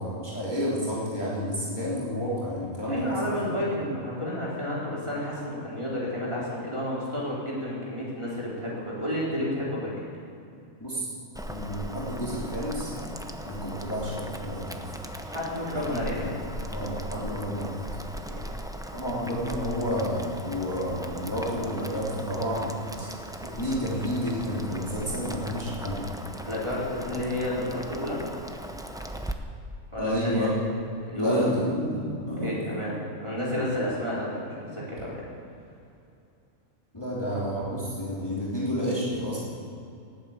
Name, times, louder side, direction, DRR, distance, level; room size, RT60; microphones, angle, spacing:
voice 1, 0.0-3.3 10.8-11.1 11.4-12.9 13.4-14.7 16.2-16.3 16.7-17.8 18.9-22.7 23.0-23.1 23.4-26.0 30.0-30.5 31.1-32.6 36.9-39.4, equal, 15° left, -7 dB, 3.0 m, -30 dB
voice 2, 2.9-9.9 15.3-16.3 18.3-18.5 26.4-28.2 29.9-30.5 31.0-31.5 32.4-35.3, left 1 dB, 20° right, -7 dB, 4.5 m, -31 dB
Boiling, 11.3-29.3, equal, 5° right, 0.6 m, -38 dB
18.5 x 8.9 x 8.2 m, 2.6 s
omnidirectional pair, 1.4 m